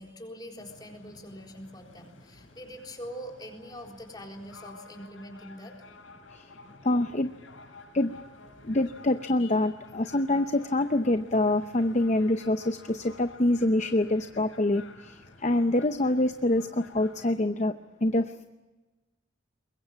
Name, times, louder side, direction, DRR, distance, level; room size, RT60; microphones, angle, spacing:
voice 1, 0.0-5.7, equal, 20° left, 1 dB, 4.0 m, -43 dB
sound 1, 0.6-17.3, left 3 dB, 90° left, 5.4 m, -52 dB
voice 2, 6.8-7.3 7.9-8.2 8.6-17.7 18.0-18.3, left 1 dB, 35° left, 9 dB, 0.7 m, -26 dB
24.0 x 22.0 x 7.5 m, 1.2 s
head